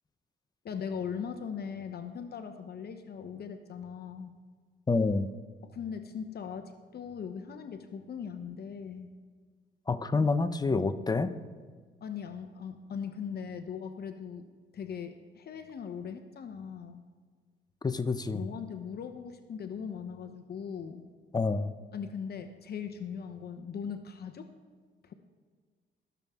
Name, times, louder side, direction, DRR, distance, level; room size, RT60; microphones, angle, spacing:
voice 1, 0.6-4.3 5.6-9.1 10.2-10.3 12.0-14.5 14.7-17.0 18.3-21.1 21.9-24.5 25.0-25.1, left 7 dB, 55° left, 8 dB, 0.9 m, -39 dB
voice 2, 4.9-5.3 9.9-11.3 17.8-18.4 21.3-21.7, left 3 dB, 20° left, 11 dB, 0.7 m, -27 dB
21.0 x 7.1 x 3.6 m, 1.5 s
cardioid pair, 90°, 20 cm